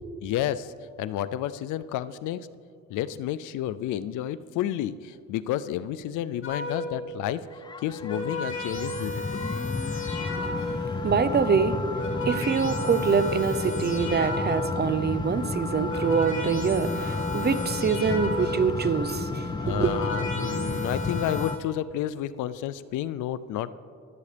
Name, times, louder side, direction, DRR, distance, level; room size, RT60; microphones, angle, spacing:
voice 1, 0.2-0.7 1.0-2.5 2.9-7.5 7.8-9.4 19.6-23.7, left 12 dB, 80° left, 16 dB, 0.5 m, -31 dB
sound 1, 6.4-7.1 7.8-11.0 11.7-14.9 15.6-18.8 19.5-21.5, left 2 dB, 45° left, 2.7 m, -34 dB
sound 2, 7.5-21.6, left 3 dB, 15° left, 0.4 m, -32 dB
voice 2, 10.3-20.0, right 6 dB, 35° right, 12 dB, 0.7 m, -25 dB
22.0 x 8.3 x 3.4 m, 2.3 s
cardioid pair, 90°, 30 cm